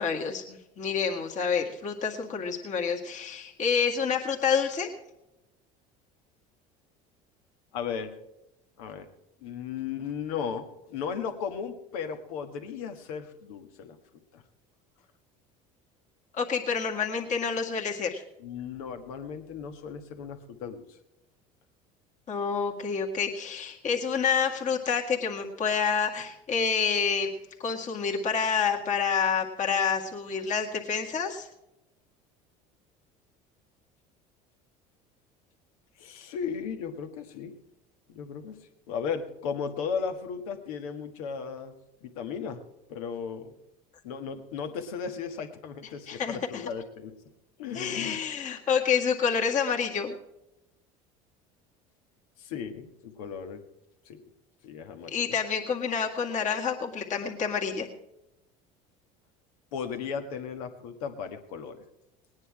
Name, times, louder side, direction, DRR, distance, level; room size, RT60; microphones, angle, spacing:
voice 1, 0.0-4.9 16.3-18.2 22.3-27.3 27.6-31.5 46.1-46.6 47.7-50.2 55.1-57.9, left 6 dB, 45° left, 0 dB, 2.0 m, -28 dB
voice 2, 7.7-8.1 8.8-9.1 9.4-14.0 14.3-14.4 18.4-21.0 36.0-37.5 38.1-38.6 38.9-41.7 42.0-42.6 42.9-43.5 44.0-47.1 47.6-48.2 52.4-53.6 54.0-54.2 54.6-55.4 59.7-61.8, left 6 dB, 80° left, 6 dB, 1.5 m, -36 dB
18.5 x 9.7 x 4.8 m, 0.90 s
supercardioid pair, 85°, 18 cm